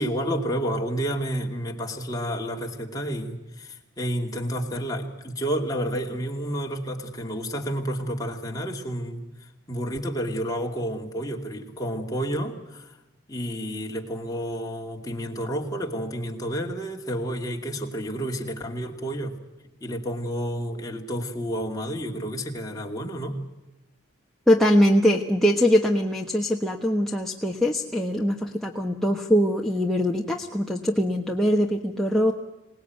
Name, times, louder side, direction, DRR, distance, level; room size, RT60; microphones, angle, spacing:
voice 1, 0.0-9.2 9.7-13.0 13.3-19.4 19.6-23.4, equal, 20° left, 1 dB, 2.5 m, -30 dB
voice 2, 24.5-32.3, equal, ahead, 0 dB, 1.3 m, -22 dB
26.0 x 19.0 x 9.3 m, 1.0 s
head